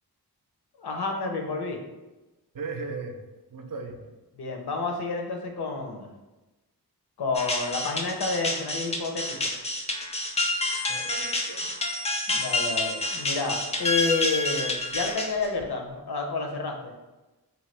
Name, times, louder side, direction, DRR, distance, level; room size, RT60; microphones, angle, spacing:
voice 1, 0.8-1.8 4.4-6.1 7.2-9.5 12.3-16.9, left 3 dB, 75° left, 3 dB, 0.6 m, -30 dB
voice 2, 2.5-3.2 3.5-4.1 10.9-11.7, right 4 dB, 55° right, 5 dB, 0.5 m, -37 dB
sound 1, 7.3-15.6, left 2 dB, 20° left, 0.3 m, -29 dB
3.0 x 2.2 x 3.1 m, 1.1 s
wide cardioid pair, 65°, 39 cm